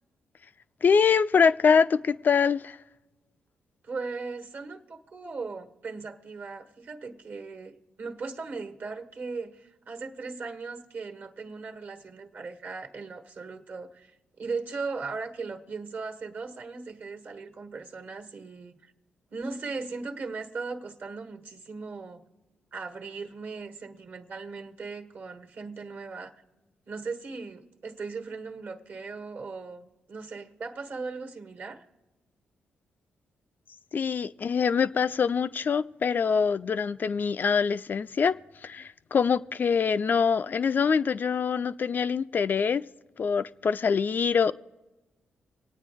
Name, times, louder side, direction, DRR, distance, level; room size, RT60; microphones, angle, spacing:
voice 1, 0.8-2.8 33.9-38.3 38.6-42.8 43.2-44.5, left 6 dB, 50° left, 0.3 m, -24 dB
voice 2, 3.8-18.9 19.3-22.2 22.7-26.3 26.9-31.8, right 4 dB, 60° right, 1.3 m, -38 dB
25.0 x 9.0 x 3.5 m
supercardioid pair, 45°, 4 cm